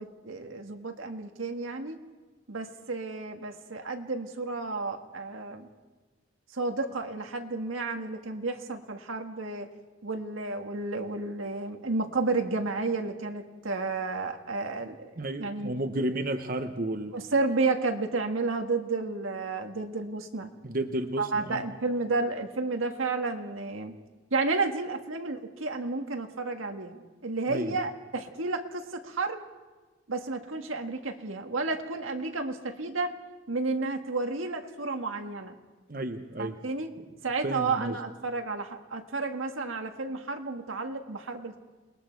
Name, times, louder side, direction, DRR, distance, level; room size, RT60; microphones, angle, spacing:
voice 1, 0.0-2.0 2.5-5.7 6.5-9.7 10.0-15.1 15.4-15.8 17.1-20.5 21.2-23.9 24.3-29.5 30.1-33.1 33.5-35.6 36.4-36.9 37.2-41.6, right 3 dB, 90° right, 4 dB, 1.7 m, -31 dB
voice 2, 15.2-17.1 20.6-21.6 27.5-27.7 35.9-36.6 37.4-38.0, right 1 dB, 45° right, 6 dB, 1.0 m, -32 dB
28.5 x 20.5 x 4.6 m, 1.3 s
head